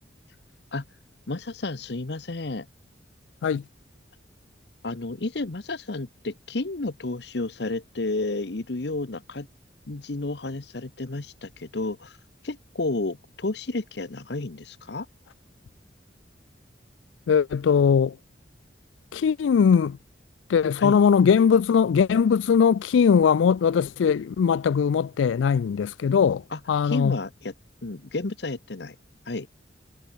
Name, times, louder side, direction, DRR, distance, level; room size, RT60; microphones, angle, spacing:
voice 1, 1.3-2.7 4.8-9.5 9.9-12.2 12.4-15.1 20.8-21.0 26.5-27.5 27.8-28.9 29.3-29.5, left 2 dB, 60° left, 1.0 m, -31 dB
voice 2, 17.3-18.2 19.1-20.0 20.5-26.4 26.7-27.2, left 6 dB, 85° left, 0.3 m, -20 dB
head